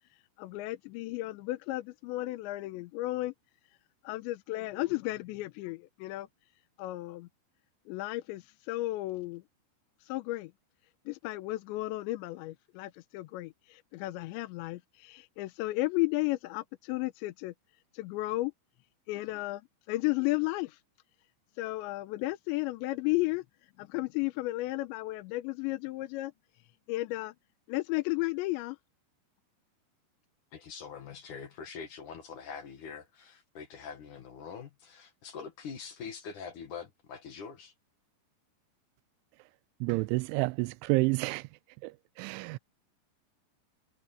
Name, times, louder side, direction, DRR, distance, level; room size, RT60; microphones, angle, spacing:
voice 1, 0.4-3.3 4.0-6.3 6.8-7.3 7.9-9.4 10.1-10.5 11.1-17.5 17.9-18.5 19.1-19.6 19.9-20.8 21.6-23.4 23.8-26.3 26.9-27.3 27.7-28.8, left 19 dB, 85° left, 3.0 m, -33 dB
voice 2, 30.5-37.7, left 6 dB, 55° left, 2.6 m, -44 dB
voice 3, 39.8-41.5 41.8-42.6, right 24 dB, 90° right, 3.0 m, -29 dB
omnidirectional pair, 5.3 m